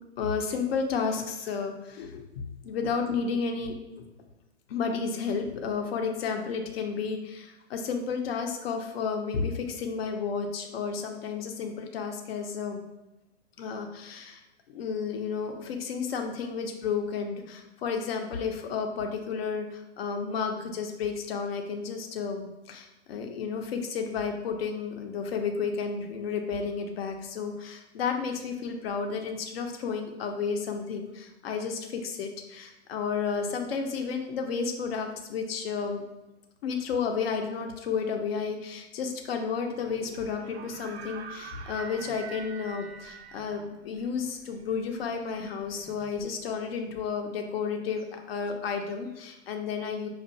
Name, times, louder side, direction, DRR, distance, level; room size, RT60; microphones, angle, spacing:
voice 1, 0.2-4.1 4.7-12.8 13.6-14.4 14.7-36.1 36.6-50.1, left 5 dB, 55° left, 4 dB, 0.7 m, -32 dB
sound 1, 39.9-46.7, right 6 dB, 65° right, 0.6 m, -46 dB
5.4 x 2.4 x 2.6 m, 1.0 s
hypercardioid pair, 130°, 35 cm